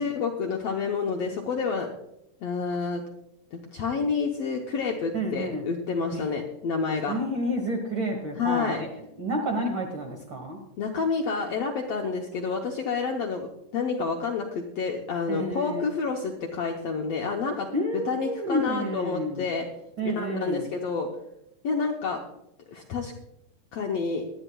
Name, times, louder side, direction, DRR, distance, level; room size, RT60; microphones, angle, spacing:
voice 1, 0.0-1.9 2.4-3.0 3.5-7.2 8.4-8.8 10.8-17.7 18.1-19.6 20.1-21.1 21.6-22.2 22.7-23.1 23.7-24.2, left 5 dB, 70° left, 1 dB, 1.6 m, -29 dB
voice 2, 5.1-5.6 6.1-6.2 7.1-8.9 9.2-10.6 15.3-15.9 17.7-19.4 20.0-20.7, equal, 55° right, 1 dB, 1.4 m, -30 dB
19.0 x 11.5 x 2.3 m, 0.85 s
omnidirectional pair, 4.0 m